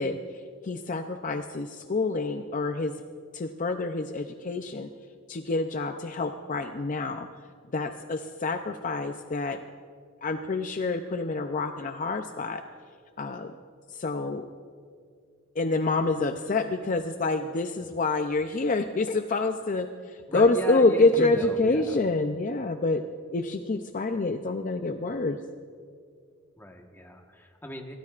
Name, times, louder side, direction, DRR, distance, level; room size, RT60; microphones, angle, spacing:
voice 1, 0.0-2.9 3.3-4.9 5.3-7.3 7.7-9.6 10.2-12.6 13.2-13.5 13.9-14.5 15.6-23.0 23.3-25.4, left 3 dB, 40° left, 7 dB, 0.5 m, -27 dB
voice 2, 20.3-22.0 26.6-27.9, equal, 10° left, 2 dB, 1.3 m, -37 dB
24.0 x 17.5 x 2.5 m, 2.1 s
head